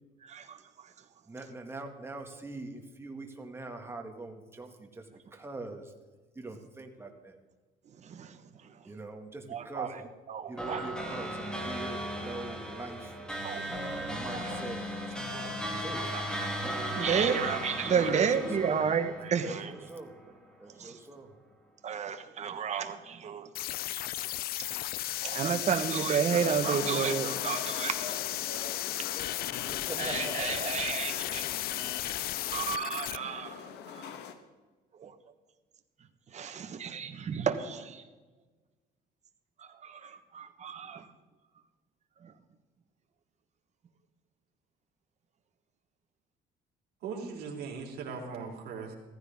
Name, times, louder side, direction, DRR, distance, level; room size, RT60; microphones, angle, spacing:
voice 1, 0.2-0.9 8.0-8.7 9.5-10.9 13.4-13.7 14.3-14.6 15.3-15.6 16.1-16.5 16.8-19.7 20.8-21.0 21.8-23.5 25.2-28.1 30.0-31.5 32.0-32.1 32.5-34.0 35.0-35.1 36.3-38.0 39.6-41.1 42.2-42.3, right 7 dB, 45° right, 7 dB, 1.4 m, -32 dB
voice 2, 1.3-5.1 5.3-5.9 6.4-7.4 8.8-10.1 10.5-13.1 14.1-14.8 15.8-16.2 17.9-18.8 19.4-20.1 20.6-21.3 29.9-30.3, right 2 dB, 15° right, 3 dB, 2.1 m, -42 dB
sound 1, 10.6-20.2, equal, 5° left, 2.7 m, -36 dB
sound 2, 23.5-33.2, left 15 dB, 65° left, 0.4 m, -35 dB
sound 3, 26.3-34.3, left 7 dB, 80° left, 1.4 m, -42 dB
voice 3, 47.0-48.9, right 5 dB, 70° right, 0 dB, 3.6 m, -39 dB
15.5 x 14.5 x 3.7 m, 1.3 s
cardioid pair, 110°, 17 cm